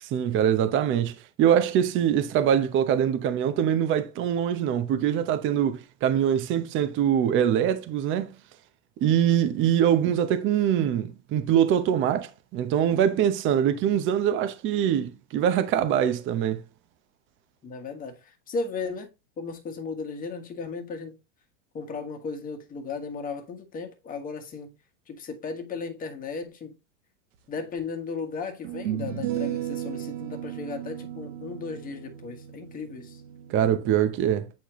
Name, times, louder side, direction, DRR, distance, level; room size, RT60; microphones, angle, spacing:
voice 1, 0.0-8.3 9.0-16.6 33.5-34.5, right 9 dB, 30° right, 0.9 m, -23 dB
voice 2, 17.6-19.1 19.4-21.2 21.7-24.7 25.1-26.8 27.5-33.2, left 4 dB, 20° left, 1.4 m, -35 dB
sound 1, 27.6-27.7 28.6-33.9, right 11 dB, 70° right, 1.5 m, -35 dB
8.4 x 4.4 x 3.0 m
supercardioid pair, 130°, 39 cm